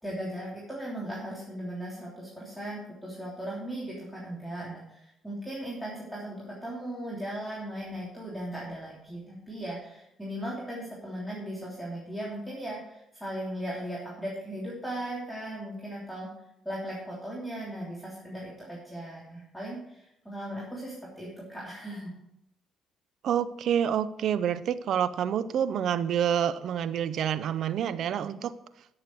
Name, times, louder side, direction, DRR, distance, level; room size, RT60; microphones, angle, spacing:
voice 1, 0.0-16.3 16.6-22.1, right 1 dB, ahead, -6 dB, 3.1 m, -37 dB
voice 2, 23.2-28.6, right 9 dB, 65° right, 15 dB, 0.6 m, -28 dB
12.5 x 6.7 x 4.6 m, 0.83 s
cardioid pair, 80°, 0 cm